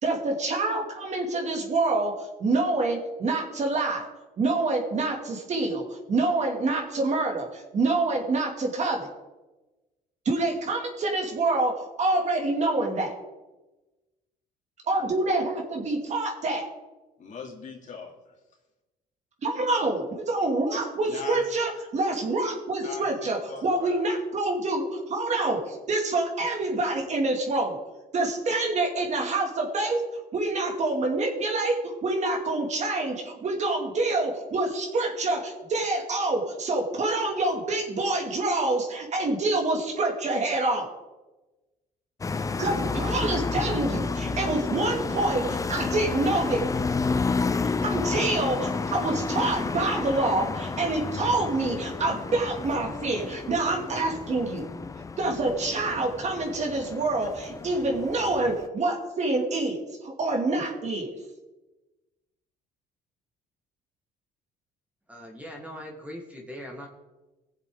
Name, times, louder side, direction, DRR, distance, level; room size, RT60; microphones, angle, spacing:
voice 1, 0.0-4.1 4.4-9.1 10.2-13.1 14.9-16.6 19.4-27.8 28.1-30.0 30.3-40.9 42.6-46.6 47.8-54.7 55.2-61.1, right 2 dB, 45° right, 1 dB, 2.5 m, -27 dB
voice 2, 17.2-18.4 21.0-21.5 22.8-24.0, left 4 dB, 50° left, -1 dB, 2.9 m, -41 dB
sound 1, 42.2-58.7, left 4 dB, 20° left, 0.5 m, -31 dB
voice 3, 65.1-66.9, equal, 10° right, 1 dB, 1.8 m, -40 dB
20.0 x 7.4 x 3.9 m, 1.1 s
cardioid pair, 110°, 17 cm